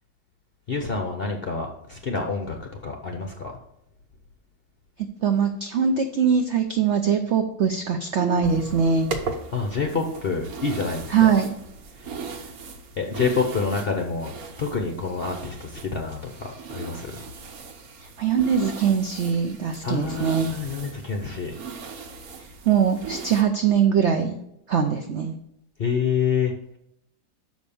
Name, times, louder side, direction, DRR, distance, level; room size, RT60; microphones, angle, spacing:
voice 1, 0.7-3.6 9.5-11.3 12.0-12.1 13.0-14.3 14.6-17.2 19.8-21.5 25.8-26.5, left 5 dB, 50° left, 3 dB, 0.7 m, -27 dB
voice 2, 5.2-9.1 11.1-11.5 18.2-20.5 22.7-24.4 24.7-25.3, right 7 dB, 75° right, 6 dB, 0.6 m, -22 dB
sound 1, 8.4-23.4, right 4 dB, 55° right, 1.2 m, -38 dB
6.3 x 5.1 x 6.9 m, 0.79 s
omnidirectional pair, 2.0 m